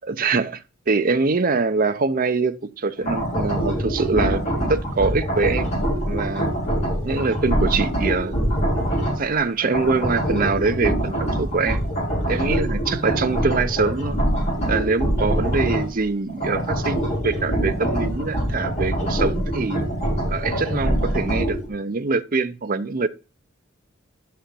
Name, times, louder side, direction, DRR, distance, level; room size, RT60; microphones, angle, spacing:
voice 1, 0.1-5.7 6.1-6.5 7.0-8.4 9.2-11.8 12.3-14.2 14.7-19.8 20.3-23.1, right 4 dB, 45° right, 0.6 m, -24 dB
sound 1, 3.0-9.3 9.6-15.9 16.3-21.7, right 1 dB, 35° left, 4.4 m, -24 dB
10.5 x 4.4 x 5.1 m
head